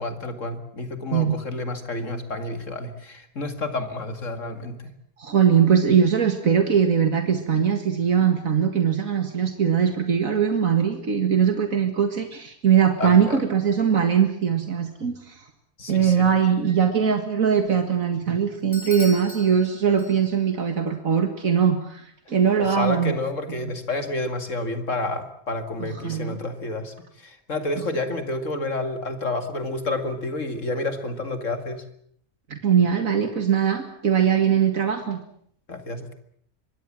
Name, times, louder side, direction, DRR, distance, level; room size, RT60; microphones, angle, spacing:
voice 1, 0.0-4.9 13.0-13.4 15.8-16.3 22.6-31.8 35.7-36.1, left 2 dB, 65° left, 8 dB, 2.5 m, -30 dB
voice 2, 5.2-15.4 15.9-23.1 23.6-23.8 25.8-26.4 32.5-35.2, right 7 dB, 75° right, 6 dB, 2.3 m, -21 dB
Bell / Doorbell, 18.7-20.6, left 2 dB, 40° left, 3.6 m, -39 dB
25.0 x 22.5 x 7.5 m, 0.66 s
omnidirectional pair, 1.4 m